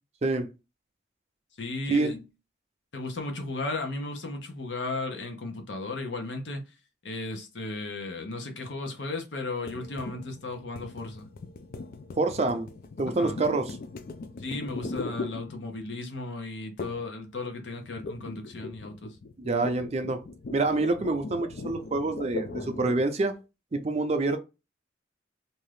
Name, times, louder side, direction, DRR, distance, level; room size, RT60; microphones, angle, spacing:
voice 1, 1.6-2.2 2.9-6.6 7.0-11.2 13.2-13.3 14.4-18.9, left 2 dB, 75° left, 0.8 m, -35 dB
sound 1, 9.7-16.0 16.8-17.2 17.4-23.1, left 3 dB, 50° left, 0.4 m, -39 dB
voice 2, 12.2-12.7 13.0-13.8 19.4-20.2 20.5-23.3 23.7-24.4, right 2 dB, 35° right, 0.4 m, -26 dB
2.7 x 2.3 x 3.2 m
head